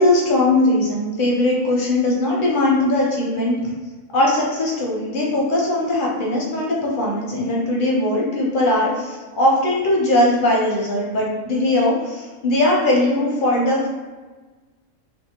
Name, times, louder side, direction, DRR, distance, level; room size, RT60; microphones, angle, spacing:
voice 1, 0.0-3.6 4.1-13.9, left 1 dB, 55° left, -3 dB, 0.6 m, -19 dB
2.6 x 2.2 x 2.8 m, 1.3 s
omnidirectional pair, 1.5 m